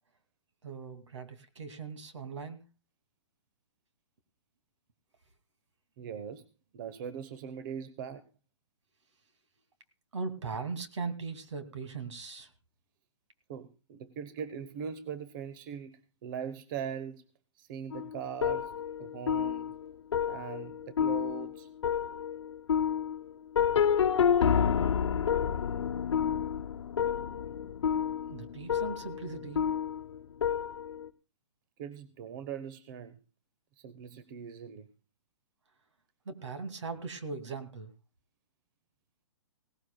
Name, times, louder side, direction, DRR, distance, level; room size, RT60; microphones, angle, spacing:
voice 1, 0.6-2.7 10.1-12.5 28.3-29.7 36.3-37.9, right 4 dB, 80° right, 8 dB, 2.5 m, -39 dB
voice 2, 6.0-6.4 6.7-8.3 13.5-17.2 17.6-18.7 19.0-19.7 20.3-21.7 31.8-33.2 33.8-34.9, right 7 dB, 45° right, 13 dB, 1.0 m, -41 dB
sound 1, 17.9-31.1, left 8 dB, 75° left, 0.9 m, -29 dB
18.5 x 17.5 x 2.3 m, 0.29 s
hypercardioid pair, 135°, 15 cm